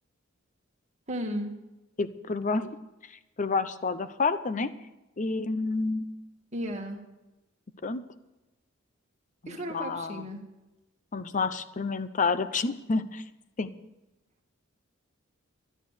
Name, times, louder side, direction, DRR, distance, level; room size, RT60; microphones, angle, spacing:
voice 1, 1.1-1.5 6.5-7.0 9.5-10.4, equal, 35° right, 1 dB, 2.0 m, -34 dB
voice 2, 2.0-2.8 3.4-4.7 5.2-6.1 7.8-8.0 9.5-10.3 11.1-13.2 13.6-13.7, left 4 dB, 40° left, 13 dB, 0.7 m, -29 dB
13.0 x 11.0 x 6.6 m, 1.0 s
head